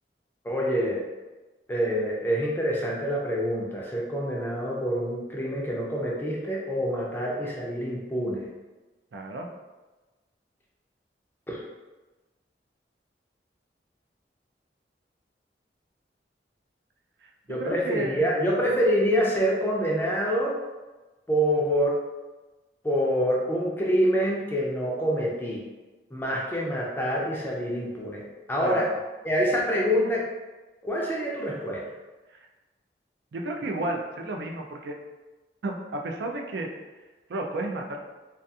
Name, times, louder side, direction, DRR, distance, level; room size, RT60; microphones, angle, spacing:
voice 1, 0.4-1.0 1.7-8.5 11.5-11.6 17.5-20.5 21.3-22.0 22.8-25.6 26.1-28.9 29.2-30.2 30.8-31.8, equal, 10° left, -3 dB, 0.4 m, -26 dB
voice 2, 9.1-9.5 17.2-18.6 28.6-29.0 32.3-32.4 33.3-35.0 35.6-36.7 37.3-38.0, right 2 dB, 75° right, 2 dB, 0.4 m, -32 dB
2.4 x 2.3 x 2.6 m, 1.2 s
head